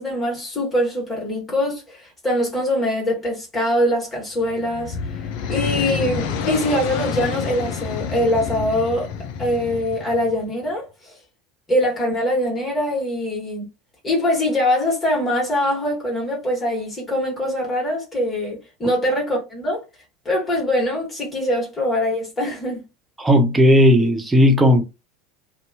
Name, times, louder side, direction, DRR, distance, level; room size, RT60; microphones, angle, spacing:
voice 1, 0.0-5.2 5.5-9.1 9.4-11.2 11.7-13.7 14.0-19.8 20.2-22.8, left 1 dB, 20° left, 1.4 m, -23 dB
sound 1, 4.4-10.5, left 6 dB, 55° left, 0.4 m, -28 dB
voice 2, 23.2-24.8, equal, 10° right, 0.5 m, -14 dB
2.6 x 2.2 x 2.7 m
figure-of-eight pair, 75°, 0 cm